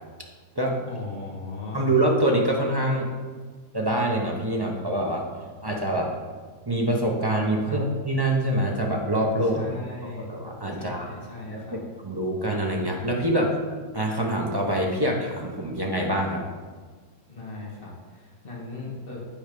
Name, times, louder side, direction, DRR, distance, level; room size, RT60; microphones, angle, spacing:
voice 1, 0.8-1.9 7.6-7.8 9.4-10.3 10.7-11.8 17.3-19.2, left 3 dB, 35° left, -4 dB, 1.9 m, -38 dB
voice 2, 1.7-3.1 3.7-5.3 5.6-6.1 6.7-9.7 10.0-11.1 11.5-11.8 12.0-13.6 13.9-16.4, right 1 dB, 25° right, -1 dB, 0.5 m, -25 dB
8.8 x 4.7 x 5.2 m, 1.5 s
omnidirectional pair, 1.7 m